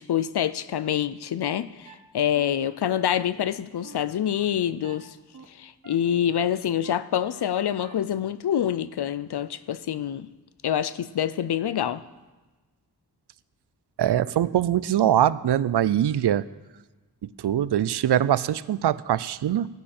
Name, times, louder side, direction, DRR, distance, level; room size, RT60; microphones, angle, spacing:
voice 1, 0.0-5.2 5.5-10.3 10.6-12.0, left 10 dB, 75° left, 0.6 m, -26 dB
sound 1, 1.8-1.9 2.3-2.4 2.8-2.9 3.3-3.4 3.8-3.9 4.3-4.4 4.8-4.9 5.3-5.4 5.8-5.9 6.3-6.4 6.8-6.9 7.3-7.4 7.8-7.9, right 5 dB, 50° right, 1.6 m, -47 dB
voice 2, 14.0-16.4 17.2-19.7, right 11 dB, 90° right, 0.5 m, -23 dB
16.0 x 10.0 x 4.3 m
wide cardioid pair, 70°, 39 cm